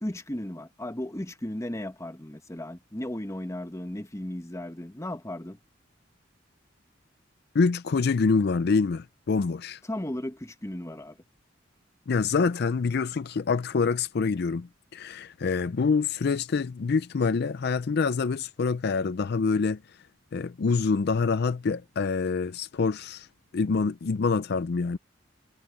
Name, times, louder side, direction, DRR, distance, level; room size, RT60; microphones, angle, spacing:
voice 1, 0.0-5.6 9.8-11.2, left 1 dB, 15° left, 1.2 m, -35 dB
voice 2, 7.5-9.8 12.1-19.8 20.3-23.3 23.5-25.0, left 4 dB, 55° left, 0.4 m, -26 dB
head